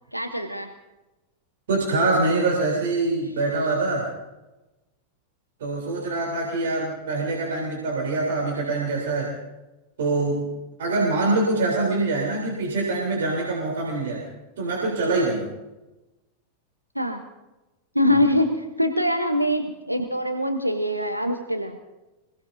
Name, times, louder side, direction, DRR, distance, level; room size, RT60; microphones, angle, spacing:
voice 1, 0.1-0.7 16.9-17.2 17.9-21.8, left 1 dB, 90° right, 5 dB, 1.0 m, -23 dB
voice 2, 1.7-4.1 5.6-9.3 10.0-10.5 10.8-14.2 14.6-15.5 18.1-18.2, right 2 dB, 60° right, -2 dB, 3.7 m, -24 dB
26.0 x 17.5 x 2.7 m, 1.0 s
figure-of-eight pair, 90°, 0 cm